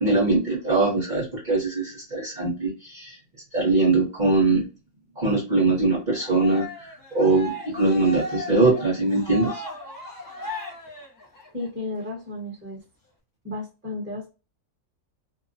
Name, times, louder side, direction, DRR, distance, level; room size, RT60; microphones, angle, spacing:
voice 1, 0.0-3.1 3.5-4.7 5.2-9.6, right 3 dB, 35° right, -5 dB, 1.0 m, -22 dB
Cheering, 6.2-11.7, left 1 dB, 25° left, 0.4 m, -36 dB
voice 2, 11.5-12.8 13.4-14.3, left 2 dB, 10° right, -2 dB, 1.0 m, -33 dB
2.9 x 2.2 x 2.5 m, 0.30 s
omnidirectional pair, 1.5 m